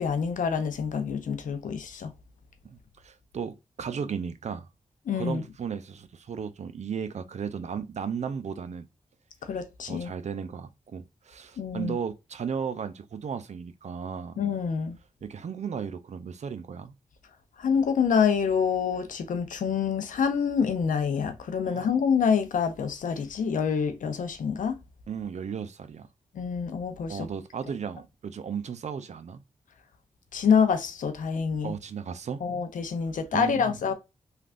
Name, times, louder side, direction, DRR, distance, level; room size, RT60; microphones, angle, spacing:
voice 1, 0.0-2.1 5.1-5.4 9.4-10.1 11.6-12.0 14.4-15.0 17.6-24.8 26.3-27.3 30.3-31.7 32.4-33.9, left 6 dB, 75° left, 0.6 m, -26 dB
voice 2, 2.6-4.7 5.1-8.9 9.8-14.4 15.2-16.9 21.7-22.0 25.1-26.1 27.1-29.4 31.6-32.4 33.3-33.8, right 7 dB, 55° right, 0.5 m, -35 dB
3.3 x 2.4 x 2.5 m
cardioid pair, 60°, 14 cm